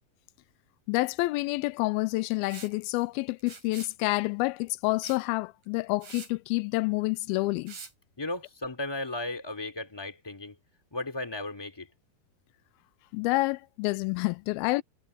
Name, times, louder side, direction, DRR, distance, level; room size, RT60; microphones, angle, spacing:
voice 1, 0.9-7.8 13.1-14.8, left 21 dB, 85° left, 2.4 m, -28 dB
Liquid, 2.5-2.7 3.4-4.0 5.0-5.2 5.6-5.7 6.0-6.3 7.7-7.9, right 5 dB, 60° right, 5.8 m, -45 dB
voice 2, 8.2-10.6 10.9-11.9, left 2 dB, 5° left, 2.7 m, -35 dB
omnidirectional pair, 4.2 m